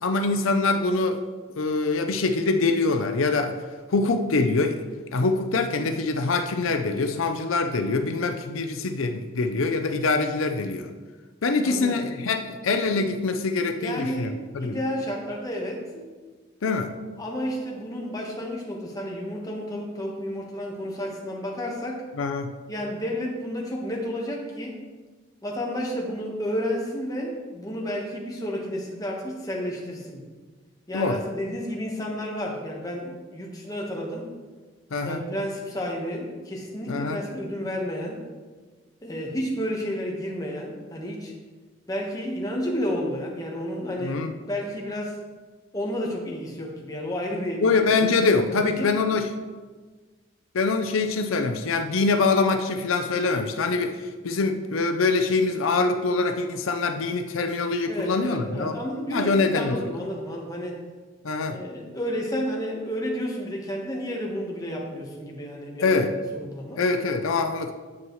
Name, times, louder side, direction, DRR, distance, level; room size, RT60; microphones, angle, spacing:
voice 1, 0.0-1.2 1.6-3.5 3.9-4.8 5.1-10.9 11.4-14.8 16.6-16.9 22.2-22.5 30.9-31.2 34.9-35.2 36.9-37.2 44.0-44.3 47.6-49.3 50.5-58.8 59.1-60.0 61.2-61.6 65.8-66.1 66.8-67.7, left 3 dB, 90° left, 6 dB, 0.6 m, -24 dB
voice 2, 11.6-12.0 13.8-16.1 17.2-22.0 22.7-24.8 25.4-30.2 30.9-34.3 35.0-38.2 39.0-41.3 41.9-45.2 45.7-48.1 48.5-48.9 57.9-60.8 61.5-66.0 66.3-66.8, equal, 20° left, -1 dB, 1.3 m, -31 dB
9.5 x 7.1 x 3.2 m, 1.4 s
head